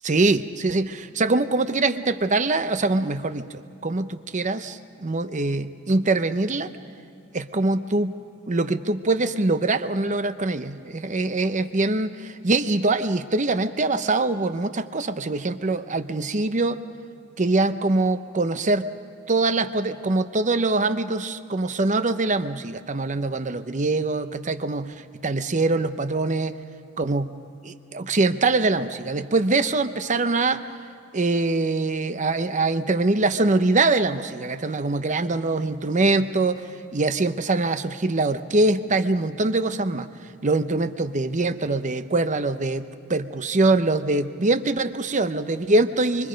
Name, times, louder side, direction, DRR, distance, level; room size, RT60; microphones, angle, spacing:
voice 1, 0.0-6.7 7.3-8.1 8.5-16.8 17.4-18.9 19.3-24.9 25.2-26.6 27.0-27.4 27.6-30.7 31.1-36.6 36.9-40.1 40.4-46.3, right 2 dB, 35° right, 10 dB, 0.7 m, -23 dB
25.5 x 25.0 x 5.2 m, 2.6 s
head